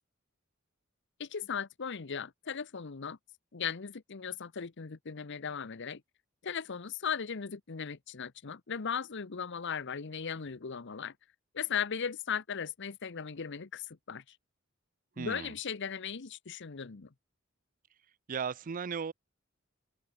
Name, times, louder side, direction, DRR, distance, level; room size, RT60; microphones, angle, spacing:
voice 1, 1.2-3.2 3.5-6.0 6.4-11.1 11.5-14.4 15.2-17.1, left 7 dB, 60° left, 0.8 m, -37 dB
voice 2, 15.2-15.5 18.3-19.1, right 6 dB, 40° right, 0.4 m, -36 dB
open air
head